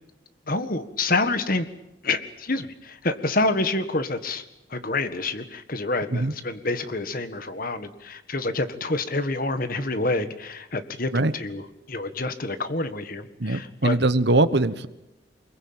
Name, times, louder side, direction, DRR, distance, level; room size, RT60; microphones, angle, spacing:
voice 1, 0.5-1.7 2.0-4.4 4.7-11.6 11.9-14.0, left 2 dB, 50° left, 10 dB, 1.7 m, -27 dB
voice 2, 13.4-14.9, right 2 dB, 60° right, 13 dB, 1.2 m, -21 dB
24.5 x 22.0 x 8.9 m, 0.91 s
head